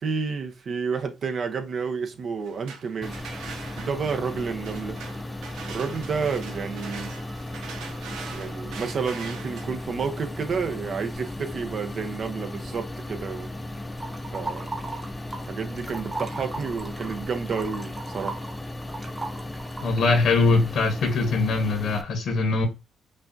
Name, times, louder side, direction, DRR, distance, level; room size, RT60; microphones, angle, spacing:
voice 1, 0.0-3.2 3.8-5.0 5.7-7.1 8.3-13.5 14.3-14.7 15.5-18.4, right 5 dB, 55° right, 0.7 m, -30 dB
sound 1, 2.4-12.2, right 5 dB, 85° right, 0.7 m, -43 dB
sound 2, 3.0-22.0, left 1 dB, 15° left, 0.6 m, -36 dB
sound 3, 14.0-15.5 15.8-20.2, right 3 dB, 20° right, 0.8 m, -36 dB
voice 2, 19.8-22.7, left 3 dB, 65° left, 1.0 m, -22 dB
5.3 x 2.4 x 2.6 m
cardioid pair, 90°, 0 cm